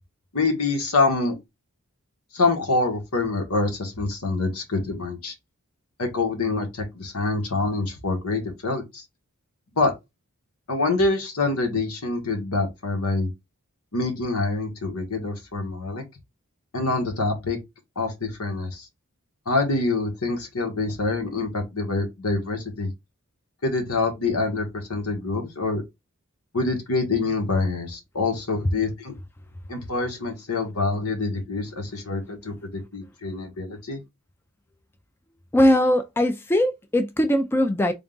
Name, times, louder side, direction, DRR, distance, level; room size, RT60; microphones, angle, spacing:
voice 1, 0.3-1.4 2.3-5.3 6.0-9.0 9.7-9.9 10.7-13.3 13.9-16.0 16.7-17.6 18.0-18.9 19.5-22.9 23.6-25.8 26.5-29.1 29.7-34.0, left 3 dB, 85° left, 1.3 m, -26 dB
voice 2, 35.5-37.9, left 1 dB, 10° left, 0.3 m, -20 dB
3.6 x 2.4 x 3.8 m
head